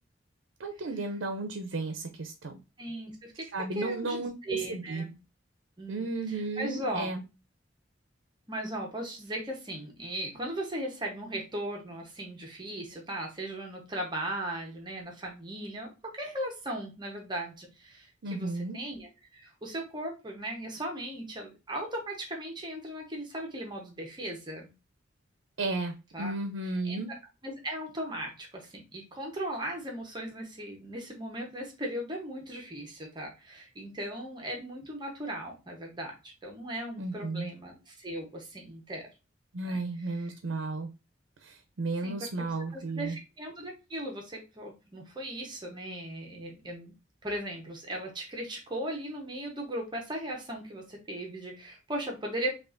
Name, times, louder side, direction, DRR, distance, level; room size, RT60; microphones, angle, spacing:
voice 1, 0.6-2.6 3.5-5.0 5.9-7.2 18.2-18.8 25.6-27.1 37.0-37.5 39.5-40.9 41.4-43.2, right 3 dB, 90° right, 6 dB, 0.5 m, -34 dB
voice 2, 2.8-3.5 3.7-5.2 5.8-7.1 8.5-15.9 16.2-24.7 26.1-26.3 26.8-27.0 27.4-39.1 39.6-40.3 42.0-46.9 47.2-52.5, right 1 dB, 25° right, 1 dB, 0.8 m, -38 dB
5.6 x 2.4 x 2.5 m, 0.28 s
head